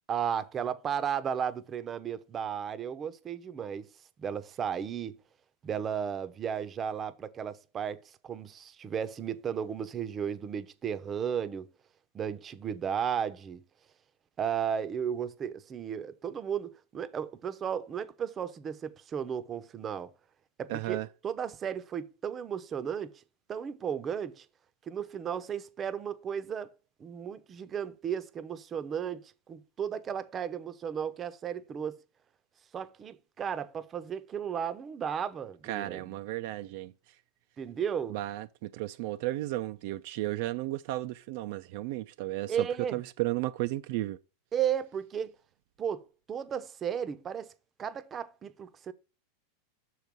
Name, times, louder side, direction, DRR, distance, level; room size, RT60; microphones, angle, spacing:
voice 1, 0.1-3.9 4.2-5.2 5.6-11.7 12.1-13.6 14.4-20.1 20.6-23.2 23.5-24.4 24.9-26.7 27.0-32.0 32.7-36.1 37.6-38.2 42.5-43.0 44.5-45.4 45.8-47.5 47.8-48.9, right 8 dB, 30° right, 0.7 m, -34 dB
voice 2, 20.7-21.1 35.7-36.9 38.1-42.7 42.9-44.2, right 17 dB, 65° right, 0.5 m, -34 dB
6.4 x 4.7 x 5.1 m
hypercardioid pair, 115°, 0 cm